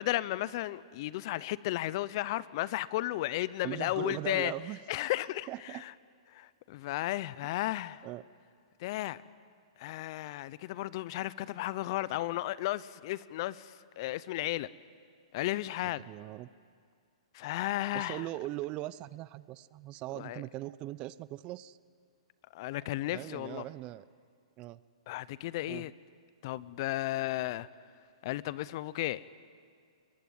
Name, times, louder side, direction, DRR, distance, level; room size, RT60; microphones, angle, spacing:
voice 1, 0.0-4.5 4.9-5.9 6.3-8.1 8.8-9.2 9.8-14.7 15.3-16.0 17.3-18.2 20.1-20.4 22.5-23.7 25.1-25.9 26.4-27.7 28.2-29.2, left 16 dB, 50° left, 19 dB, 0.7 m, -34 dB
voice 2, 3.6-4.8 5.5-5.8 8.0-8.2 16.1-16.5 17.9-21.8 23.1-24.0 24.6-24.8 25.7-25.8, right 16 dB, 35° right, 19 dB, 0.6 m, -40 dB
22.5 x 21.0 x 9.5 m, 2.2 s
hypercardioid pair, 125°, 3 cm